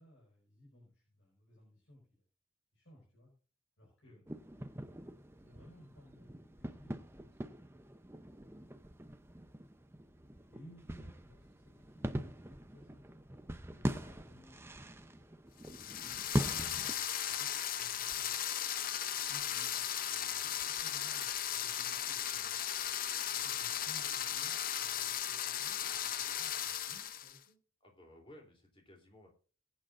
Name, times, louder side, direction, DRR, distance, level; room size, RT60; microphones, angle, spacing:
voice 1, 0.0-2.2 2.7-3.3 3.8-4.3 5.4-7.5 10.5-13.0 13.7-15.3 15.7-16.3 16.8-18.4 19.0-19.9 20.2-22.6 23.3-27.6, equal, 60° left, -2 dB, 5.3 m, -60 dB
sound 1, 4.3-16.9, equal, 10° right, 0.6 m, -42 dB
sound 2, 15.6-27.4, left 10 dB, 45° left, 0.6 m, -36 dB
voice 2, 20.1-20.6 27.8-29.3, left 1 dB, 25° left, 1 dB, 3.2 m, -59 dB
21.5 x 8.8 x 2.5 m, 0.39 s
head